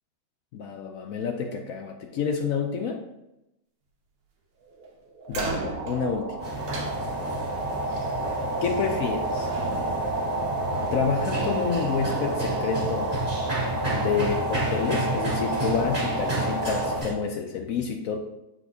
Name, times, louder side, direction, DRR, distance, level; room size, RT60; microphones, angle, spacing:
voice 1, 0.5-3.0 5.3-6.3 8.6-9.5 10.9-13.1 13.9-18.2, left 6 dB, 70° left, 3 dB, 1.0 m, -29 dB
sound 1, 4.8-4.9 5.2-17.0, right 2 dB, 65° right, 1.4 m, -30 dB
sound 2, 5.3-7.6 8.7-9.1 9.4-11.1, right 3 dB, 80° right, 1.4 m, -37 dB
sound 3, 6.4-17.1, right 1 dB, 30° right, 2.1 m, -32 dB
8.0 x 4.5 x 2.7 m, 0.90 s
omnidirectional pair, 1.6 m